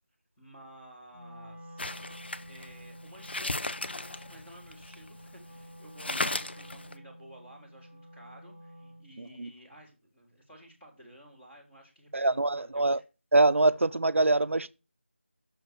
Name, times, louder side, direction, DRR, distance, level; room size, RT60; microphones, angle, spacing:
voice 1, 0.4-1.8 2.5-13.0, right 1 dB, 10° left, 1.7 m, -53 dB
Wind instrument woodwind instrument, 1.1-9.1, equal, 30° left, 1.3 m, -49 dB
sound 1, 1.8-5.3 5.6-5.7 6.0-6.9, left 2 dB, 55° left, 0.7 m, -35 dB
voice 2, 9.2-9.5 12.1-13.0 13.3-14.7, right 2 dB, 85° right, 0.5 m, -24 dB
6.5 x 4.3 x 6.4 m
figure-of-eight pair, 170°, 7 cm